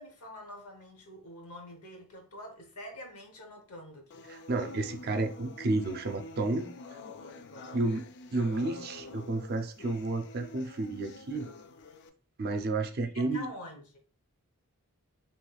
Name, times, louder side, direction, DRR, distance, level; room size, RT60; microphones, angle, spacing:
voice 1, 0.0-4.3 7.5-7.9 13.0-14.0, left 1 dB, 85° left, 0.9 m, -46 dB
sound 1, 4.1-12.1, left 3 dB, 50° left, 0.3 m, -47 dB
voice 2, 4.3-6.7 7.7-8.0 8.3-11.5 12.4-13.5, right 2 dB, 45° right, 0.4 m, -31 dB
3.1 x 3.1 x 2.3 m
head